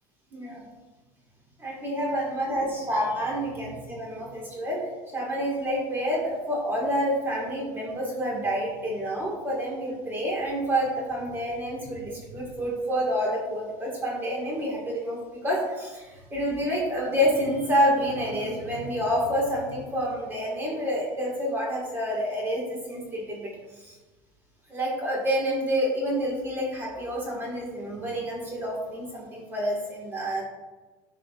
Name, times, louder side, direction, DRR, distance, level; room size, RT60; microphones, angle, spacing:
voice 1, 0.3-0.6 1.6-4.8 5.1-24.0 24.7-30.4, equal, 20° right, -3 dB, 1.7 m, -28 dB
11.5 x 4.9 x 2.4 m, 1.2 s
cardioid pair, 145°, 10 cm